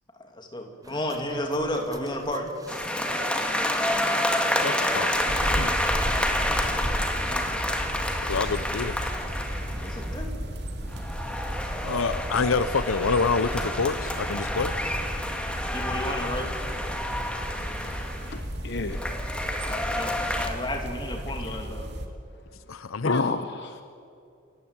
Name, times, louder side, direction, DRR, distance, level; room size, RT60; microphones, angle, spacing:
voice 1, 0.2-2.5 6.9-7.8 9.8-10.3 15.7-16.5 19.6-21.9, left 1 dB, 20° left, 3 dB, 2.7 m, -33 dB
sound 1, 0.8-7.1, right 1 dB, 15° right, 1.0 m, -34 dB
sound 2, 2.7-10.2 10.9-18.4 18.9-20.5, left 1 dB, 5° left, 1.8 m, -29 dB
voice 2, 4.6-5.1 5.4-5.8 8.3-9.1 11.8-14.8 22.7-23.2, left 4 dB, 85° left, 14 dB, 0.7 m, -27 dB
sound 3, 5.3-22.1, equal, 55° right, 2.4 m, -35 dB
voice 3, 18.3-19.2 21.2-21.6 22.8-23.8, left 3 dB, 55° left, 9 dB, 0.9 m, -31 dB
28.0 x 15.0 x 8.9 m, 2.5 s
head